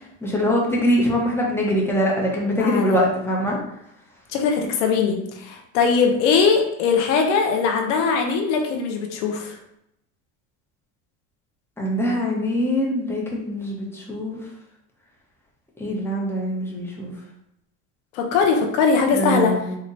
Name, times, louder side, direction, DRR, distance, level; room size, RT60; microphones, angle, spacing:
voice 1, 0.2-3.6 11.8-14.4 15.8-17.1 19.1-19.8, equal, 5° left, -3 dB, 1.1 m, -23 dB
voice 2, 2.6-3.0 4.3-9.6 18.1-19.5, left 5 dB, 90° left, 3 dB, 0.7 m, -20 dB
4.3 x 2.5 x 3.2 m, 0.80 s
supercardioid pair, 105°, 35 cm